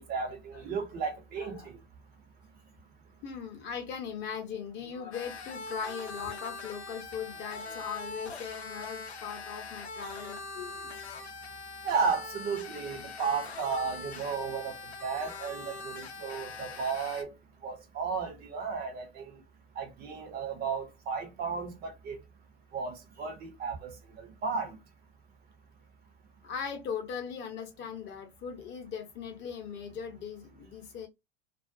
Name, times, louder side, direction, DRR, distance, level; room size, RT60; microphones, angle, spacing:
voice 1, 0.0-1.8 11.8-14.7 15.0-17.3 17.6-19.4 19.8-22.2 22.7-24.8, right 5 dB, 30° right, 0.6 m, -34 dB
voice 2, 1.4-1.7 3.2-11.0 26.4-31.1, left 7 dB, 35° left, 0.8 m, -39 dB
sound 1, 5.1-17.2, left 3 dB, 85° left, 0.6 m, -42 dB
2.4 x 2.1 x 2.4 m
figure-of-eight pair, 90°, 31 cm